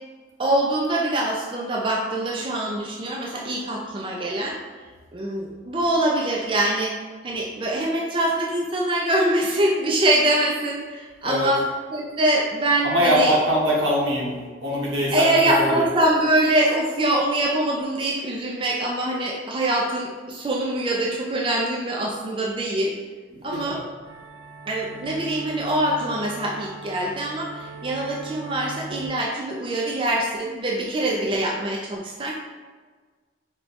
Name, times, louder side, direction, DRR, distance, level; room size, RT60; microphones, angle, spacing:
voice 1, 0.4-4.6 5.1-6.9 7.2-11.6 11.9-13.4 15.1-22.9 23.4-23.8 24.7-32.3, right 1 dB, 25° right, -2 dB, 0.4 m, -24 dB
voice 2, 12.8-15.9 23.3-23.8, equal, 85° right, -5 dB, 1.2 m, -23 dB
sound 1, 24.0-29.1, right 3 dB, 70° right, 1.0 m, -39 dB
4.4 x 2.2 x 4.0 m, 1.5 s
head